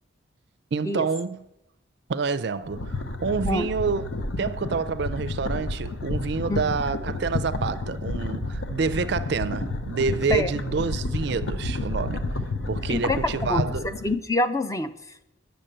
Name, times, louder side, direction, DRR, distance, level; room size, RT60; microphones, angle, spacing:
voice 1, 0.7-1.4 2.1-4.1 4.4-12.3 12.7-13.9, right 5 dB, 55° right, 0.4 m, -28 dB
sound 1, 2.6-14.1, left 2 dB, 70° left, 0.8 m, -30 dB
voice 2, 13.5-14.9, left 2 dB, 15° left, 0.4 m, -26 dB
8.8 x 6.8 x 6.6 m
head